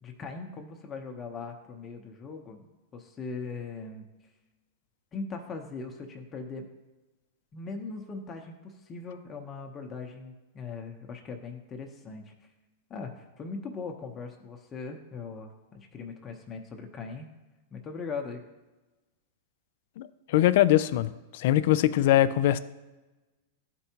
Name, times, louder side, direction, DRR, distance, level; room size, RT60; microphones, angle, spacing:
voice 1, 0.0-2.7 2.9-4.1 5.1-6.7 7.5-12.5 12.9-17.3 17.7-18.4, left 4 dB, 25° left, 0.8 m, -40 dB
voice 2, 20.0-22.6, left 13 dB, 65° left, 0.3 m, -22 dB
12.5 x 4.5 x 2.9 m
hypercardioid pair, 110°, 0 cm